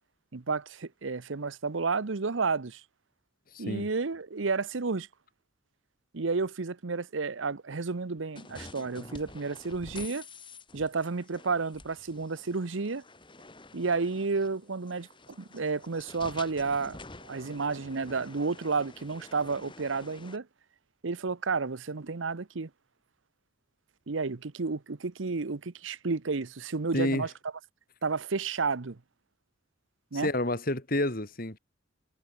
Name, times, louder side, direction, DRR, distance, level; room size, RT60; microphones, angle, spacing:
voice 1, 0.3-2.8 3.6-5.1 6.1-10.2 10.7-13.0 13.7-15.1 15.4-17.0 17.3-20.5 21.0-22.7 24.1-27.3 28.0-29.0 30.1-30.3, right 4 dB, 85° right, 0.9 m, -31 dB
voice 2, 3.5-3.9 26.9-27.3 30.1-31.6, left 1 dB, 50° left, 3.2 m, -29 dB
sound 1, 8.4-20.4, left 3 dB, 25° left, 3.4 m, -49 dB
head